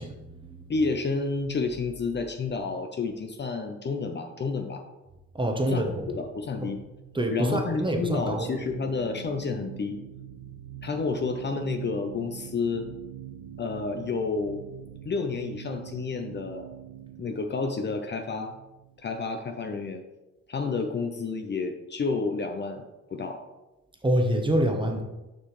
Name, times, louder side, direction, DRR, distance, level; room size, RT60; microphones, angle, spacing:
voice 1, 0.0-0.6 5.3-6.1 6.6-6.7 7.1-8.5 24.0-25.0, right 1 dB, 15° right, 3 dB, 1.0 m, -26 dB
voice 2, 0.7-4.8 5.6-5.8 6.1-6.8 7.3-10.0 10.8-12.9 13.6-14.6 15.1-16.7 17.2-18.5 19.0-20.0 20.5-23.4, left 4 dB, 35° left, 5 dB, 0.6 m, -30 dB
sound 1, 6.3-19.5, right 11 dB, 70° right, 0.5 m, -44 dB
6.5 x 5.6 x 3.2 m, 1.0 s
cardioid pair, 90°, 30 cm